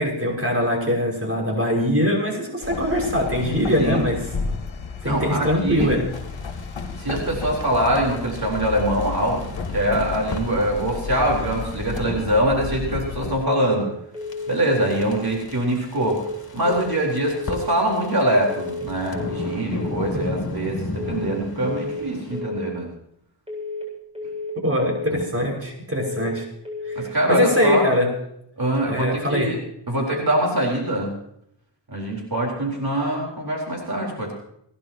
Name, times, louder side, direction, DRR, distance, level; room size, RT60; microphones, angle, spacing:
voice 1, 0.0-4.2 5.0-6.0 20.2-20.3 24.6-26.5 26.9-28.1 28.9-29.5, equal, 30° right, -1 dB, 6.0 m, -22 dB
sound 1, 2.6-13.4, left 5 dB, 85° left, 1.8 m, -32 dB
voice 2, 5.0-5.9 7.0-13.9 14.5-16.2 16.5-22.9 25.1-25.2 26.9-27.9 28.6-29.6 29.9-31.1 31.9-34.3, right 1 dB, 50° right, -1 dB, 4.4 m, -23 dB
sound 2, 6.1-12.1 14.2-22.4, left 3 dB, 50° left, 2.9 m, -36 dB
sound 3, 13.5-13.9 14.1-14.5 14.8-15.2 16.0-16.4 16.6-17.0 17.3-17.7 18.5-18.9 19.1-19.5 19.8-20.2 21.0-21.4 21.6-22.0 22.3-22.7 23.5-23.9 24.2-24.5 24.8-25.2 26.0-26.4 26.7-27.1 27.3-27.7, left 3 dB, 15° right, 7.9 m, -32 dB
29.5 x 11.5 x 3.0 m, 0.74 s
wide cardioid pair, 85°, 46 cm